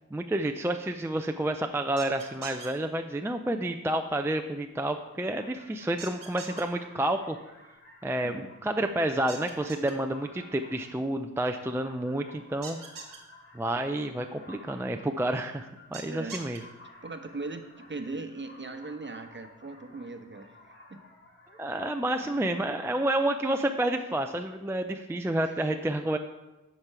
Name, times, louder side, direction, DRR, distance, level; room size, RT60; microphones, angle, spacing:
voice 1, 0.1-7.4 8.0-12.8 13.5-16.6 21.6-26.2, right 1 dB, 10° right, 6 dB, 0.5 m, -29 dB
sound 1, 2.0-2.7 6.0-6.6 9.3-9.9 12.6-13.2 15.9-16.6, right 5 dB, 85° right, 1.3 m, -42 dB
sound 2, 4.8-23.2, left 1 dB, 40° left, 2.1 m, -54 dB
voice 2, 17.0-20.7 22.2-22.3 25.4-25.5, right 3 dB, 35° right, 7 dB, 1.0 m, -39 dB
8.7 x 5.3 x 4.7 m, 1.1 s
cardioid pair, 45°, 33 cm